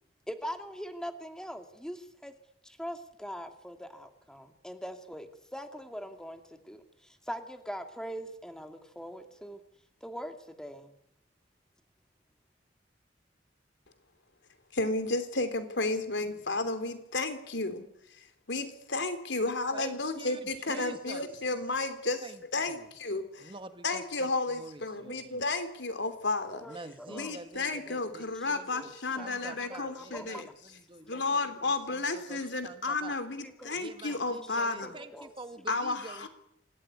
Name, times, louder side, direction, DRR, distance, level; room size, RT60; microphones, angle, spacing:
voice 1, 0.3-2.3 2.6-9.6 10.0-10.9 26.5-27.4 27.9-30.4 31.1-31.2 33.4-33.8 34.0-34.4 34.8-35.3, equal, 5° left, 6 dB, 2.4 m, -42 dB
voice 2, 14.7-17.9 18.5-22.2 22.5-23.5 23.8-26.6 27.1-30.5 31.1-34.9 35.7-36.3, left 3 dB, 85° left, 9 dB, 3.3 m, -32 dB
voice 3, 19.7-21.2 22.2-22.9 23.4-24.3 24.5-25.4 26.7-33.2 33.7-36.3, right 2 dB, 30° right, 8 dB, 1.9 m, -47 dB
26.5 x 17.0 x 9.7 m, 0.78 s
head